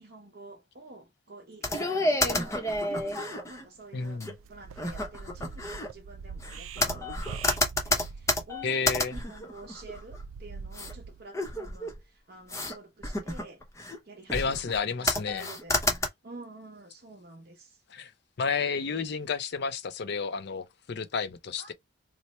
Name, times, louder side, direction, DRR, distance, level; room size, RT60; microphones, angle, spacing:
voice 1, 0.0-4.2 4.5-13.6 14.1-15.8 16.2-17.8 21.6-21.7, right 2 dB, 50° right, 0.7 m, -49 dB
sound 1, 1.6-3.7 4.2-4.3 4.8-5.9 6.4-10.2 10.7-10.9 11.3-12.0 12.5-12.7 13.0-14.0 14.3-14.8 15.1-16.1, left 2 dB, 15° left, 0.7 m, -30 dB
sound 2, 2.5-2.6 2.9-3.1 3.6-3.8 4.2-11.2, right 5 dB, 85° right, 0.4 m, -43 dB
voice 2, 3.9-4.3 8.6-9.2 14.3-15.5 17.9-18.1 18.4-21.7, left 5 dB, 55° left, 0.5 m, -31 dB
3.0 x 2.0 x 4.1 m
head